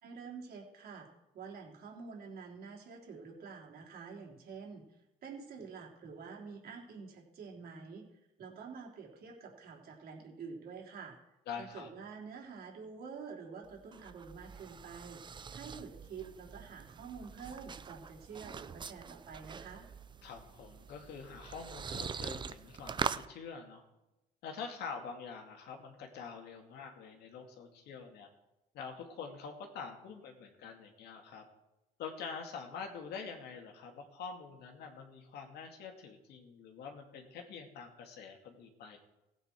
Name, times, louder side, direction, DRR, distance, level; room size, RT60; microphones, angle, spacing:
voice 1, 0.0-1.1 1.3-4.8 5.2-8.0 8.4-11.2 11.6-19.9, right 5 dB, 65° right, -1 dB, 3.5 m, -48 dB
voice 2, 11.5-11.9 20.2-23.8 24.4-28.3 28.7-31.4 32.0-39.0, left 5 dB, 75° left, 3 dB, 2.4 m, -46 dB
sound 1, 13.6-23.3, right 6 dB, 25° right, 0.5 m, -43 dB
16.0 x 9.2 x 4.5 m, 0.98 s
cardioid pair, 110°, 17 cm